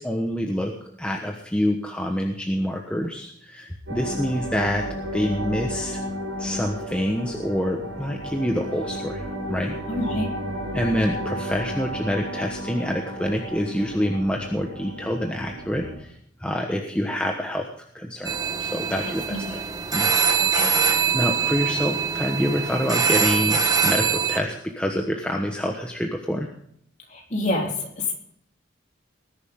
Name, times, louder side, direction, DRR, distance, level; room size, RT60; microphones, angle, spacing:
voice 1, 0.0-4.9 5.1-6.0 6.4-9.2 9.5-9.8 10.7-16.1 16.4-17.7 17.9-18.3 18.6-19.6 19.9-20.2 21.1-26.5, equal, 5° left, 1 dB, 1.2 m, -26 dB
sound 1, 3.9-16.0, equal, 75° right, 6.7 m, -33 dB
voice 2, 9.9-10.3 19.3-19.6 20.4-20.8 27.1-28.1, left 1 dB, 35° left, 0 dB, 3.4 m, -27 dB
sound 2, 18.2-24.4, right 6 dB, 20° right, 1.4 m, -23 dB
19.5 x 11.0 x 3.7 m, 0.66 s
head